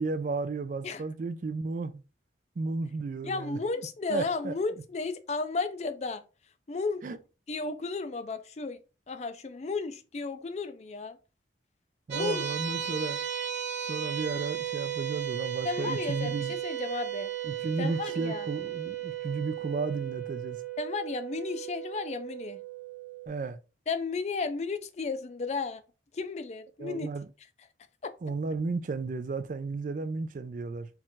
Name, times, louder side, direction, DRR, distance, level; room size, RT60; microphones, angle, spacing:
voice 1, 0.0-2.0 2.6-3.6 4.1-4.5 7.0-7.2 12.1-13.2 13.9-16.5 17.4-20.6 23.3-23.6 26.8-27.3 28.2-30.9, right 4 dB, 45° right, 0.3 m, -33 dB
voice 2, 3.2-6.2 6.7-7.0 7.5-8.8 9.1-11.2 12.1-12.4 15.6-17.3 17.8-18.5 20.8-22.6 23.9-25.8 26.1-27.1 28.0-28.1, left 4 dB, 35° left, 0.4 m, -33 dB
sound 1, 12.1-23.3, right 10 dB, 75° right, 0.9 m, -35 dB
4.3 x 2.4 x 3.8 m
head